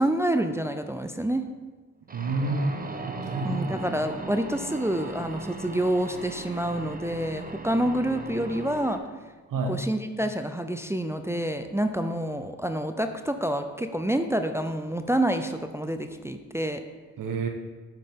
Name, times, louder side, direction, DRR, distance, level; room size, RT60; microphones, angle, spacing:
voice 1, 0.0-1.4 3.4-9.0 9.7-16.8, right 1 dB, 10° right, 7 dB, 0.5 m, -28 dB
sound 1, 2.1-9.0, right 3 dB, 25° right, 0.9 m, -38 dB
voice 2, 2.1-2.7 3.1-3.6 9.5-9.8 17.2-17.5, right 3 dB, 70° right, 4 dB, 1.1 m, -28 dB
7.6 x 5.6 x 3.6 m, 1.3 s
supercardioid pair, 50°, 34 cm